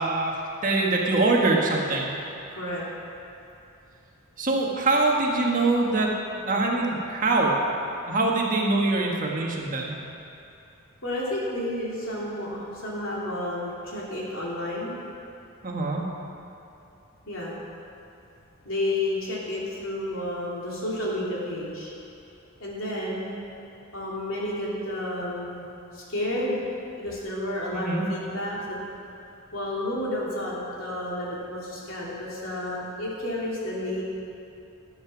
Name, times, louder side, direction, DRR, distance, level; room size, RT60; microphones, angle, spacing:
voice 1, 0.0-2.1 4.4-6.1 6.4-7.5 8.1-10.0 15.6-16.0 27.7-28.0, right 2 dB, 40° right, -1 dB, 1.4 m, -24 dB
voice 2, 2.5-2.9 11.0-15.0 17.3-17.6 18.6-21.9 22.6-23.4 23.9-26.6 27.0-28.9 29.5-34.0, left 1 dB, 70° left, -5 dB, 2.9 m, -31 dB
13.0 x 7.8 x 6.1 m, 2.8 s
head